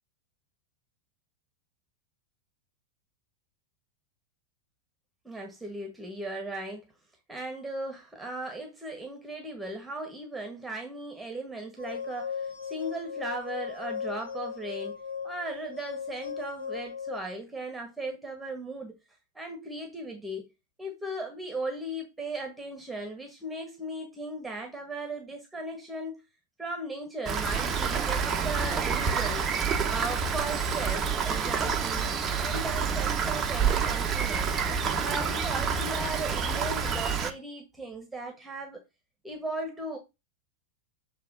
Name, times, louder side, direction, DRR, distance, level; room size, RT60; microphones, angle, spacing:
voice 1, 5.2-6.8 7.3-14.9 15.2-18.9 19.3-20.5 20.8-26.2 26.6-29.5 29.9-32.0 32.4-34.5 35.0-38.8 39.2-40.0, right 2 dB, 5° right, 1.6 m, -37 dB
sound 1, 11.8-17.2, left 6 dB, 70° left, 1.3 m, -37 dB
Rain, 27.3-37.3, right 6 dB, 25° right, 0.9 m, -28 dB
7.6 x 3.4 x 5.0 m
figure-of-eight pair, 90°, 0 cm